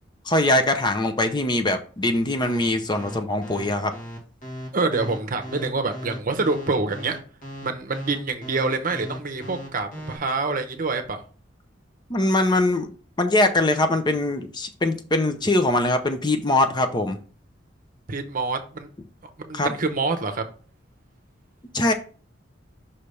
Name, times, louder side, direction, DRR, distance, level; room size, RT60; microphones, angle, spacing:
voice 1, 0.3-3.9 12.1-12.9 13.2-17.2 19.5-19.7 21.7-21.9, left 2 dB, 25° left, 0.6 m, -22 dB
sound 1, 2.4-10.2, equal, 45° left, 1.7 m, -37 dB
voice 2, 4.7-7.2 7.6-11.2 18.1-18.9 19.4-20.5, right 3 dB, 50° right, 0.8 m, -26 dB
5.6 x 3.3 x 5.3 m
head